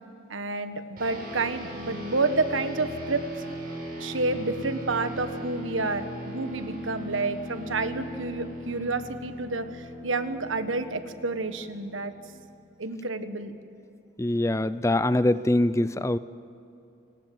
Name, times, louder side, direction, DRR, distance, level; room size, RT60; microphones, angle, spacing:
voice 1, 0.3-3.2 4.0-12.1 12.8-13.6, right 3 dB, 85° right, 10 dB, 1.5 m, -29 dB
sound 1, 1.0-12.7, equal, 50° right, 7.3 m, -39 dB
voice 2, 14.2-16.2, left 1 dB, 15° left, 15 dB, 0.5 m, -23 dB
29.0 x 18.5 x 7.8 m, 2.8 s
head